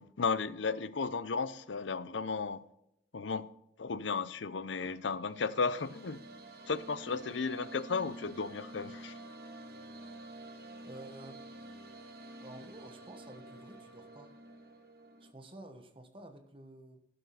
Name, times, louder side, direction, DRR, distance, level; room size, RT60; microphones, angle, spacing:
voice 1, 0.0-2.6 3.1-3.5 3.8-6.2 6.7-9.1, left 5 dB, 85° left, 0.6 m, -34 dB
sound 1, 5.1-15.3, right 1 dB, 55° right, 1.6 m, -49 dB
voice 2, 10.8-11.4 12.4-14.3 15.2-17.1, right 1 dB, 30° right, 1.2 m, -51 dB
15.5 x 6.7 x 4.1 m
head